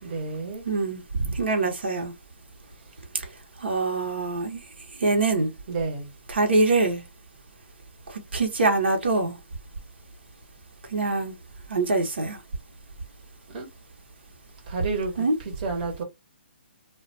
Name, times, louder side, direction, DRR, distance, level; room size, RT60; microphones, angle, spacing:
voice 1, 0.0-0.6 5.7-6.1 13.5-13.7 14.7-15.2 15.6-16.0, right 4 dB, 40° right, 0.9 m, -30 dB
voice 2, 0.6-1.0 1.3-2.1 3.6-4.6 5.0-5.5 6.3-7.0 8.1-9.4 10.9-11.3 11.7-12.4 15.2-15.3, right 3 dB, 75° right, 0.9 m, -24 dB
2.4 x 2.2 x 2.5 m
hypercardioid pair, 140°, 6 cm